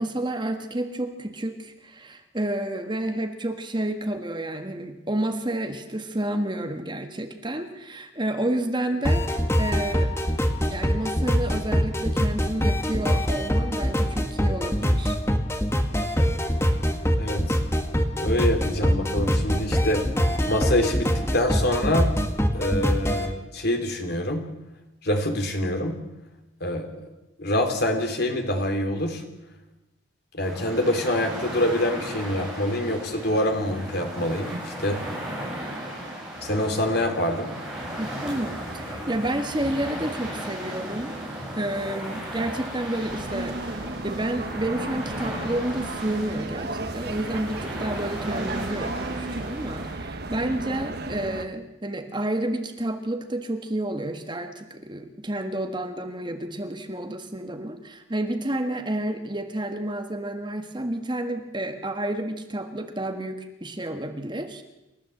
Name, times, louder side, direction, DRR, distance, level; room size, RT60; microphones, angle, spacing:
voice 1, 0.0-10.1 10.7-15.2 38.0-43.6 44.0-64.6, right 1 dB, 25° right, 6 dB, 1.5 m, -30 dB
sound 1, 9.1-23.3, equal, 15° left, 1.8 m, -24 dB
voice 2, 18.1-20.0 20.5-22.1 22.5-24.5 25.0-26.0 26.6-26.9 27.4-29.2 30.3-35.0 36.4-37.5, left 1 dB, 55° left, 5 dB, 3.3 m, -25 dB
sound 2, 30.4-49.9, right 1 dB, 5° right, 7.7 m, -36 dB
sound 3, 43.1-51.4, right 2 dB, 55° right, 1.2 m, -34 dB
28.5 x 14.0 x 7.8 m, 1.0 s
head